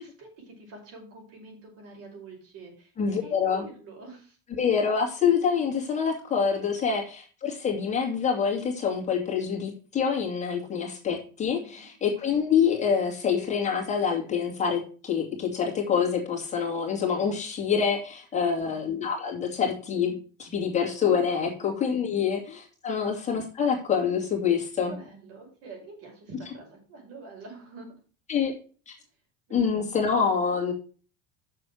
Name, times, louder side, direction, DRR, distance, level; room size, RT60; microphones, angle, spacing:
voice 1, 0.0-4.4 11.6-11.9 18.4-18.7 21.5-21.6 22.2-22.3 22.9-23.0 24.8-27.9 29.5-29.8, right 3 dB, 55° right, 1 dB, 5.3 m, -46 dB
voice 2, 3.0-3.6 4.6-24.9 28.3-28.5 28.9-29.0 29.5-30.7, left 6 dB, 25° left, -1 dB, 2.3 m, -26 dB
6.8 x 6.5 x 6.3 m, 0.39 s
cardioid pair, 140°, 30 cm